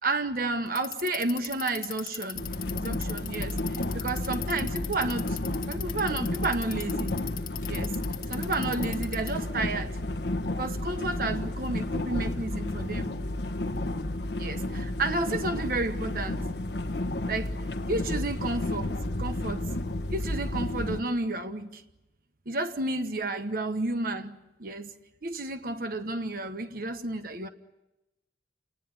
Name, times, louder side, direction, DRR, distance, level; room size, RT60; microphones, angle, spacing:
voice 1, 0.0-5.4 5.7-7.2 7.7-8.0 8.3-10.0 10.5-13.1 14.4-16.4 17.2-17.5 17.9-18.9 19.2-19.7 20.1-21.8 22.5-24.9 25.2-27.5, right 2 dB, 55° right, 1.2 m, -31 dB
Bicycle, 0.7-9.5, left 12 dB, 55° left, 1.5 m, -39 dB
sound 1, 2.4-21.0, left 1 dB, 75° left, 1.3 m, -32 dB
29.0 x 18.5 x 9.4 m
head